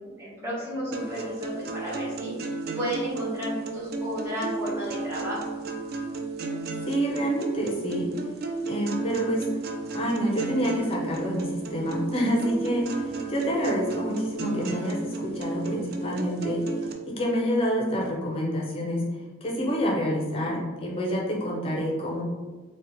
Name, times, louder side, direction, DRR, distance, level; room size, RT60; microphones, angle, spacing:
voice 1, 0.0-2.3 2.7-5.5, equal, 10° right, -10 dB, 1.0 m, -33 dB
sound 1, 0.9-16.9, right 3 dB, 45° right, 0.3 m, -33 dB
voice 2, 6.9-8.1 8.7-9.4 9.9-16.6 17.1-19.0 19.4-22.2, equal, 25° left, -2 dB, 0.4 m, -27 dB
2.8 x 2.1 x 3.8 m, 1.3 s
head